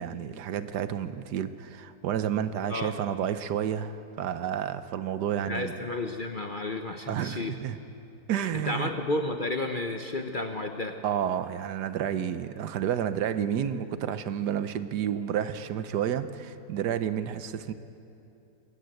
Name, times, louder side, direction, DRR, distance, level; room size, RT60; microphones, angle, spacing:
voice 1, 0.0-5.7 7.1-7.8 8.3-8.9 11.0-17.7, right 9 dB, 75° right, 12 dB, 1.4 m, -30 dB
voice 2, 5.4-7.6 8.5-11.0, left 2 dB, 40° left, 5 dB, 0.8 m, -32 dB
21.5 x 14.0 x 9.1 m, 2.9 s
omnidirectional pair, 1.8 m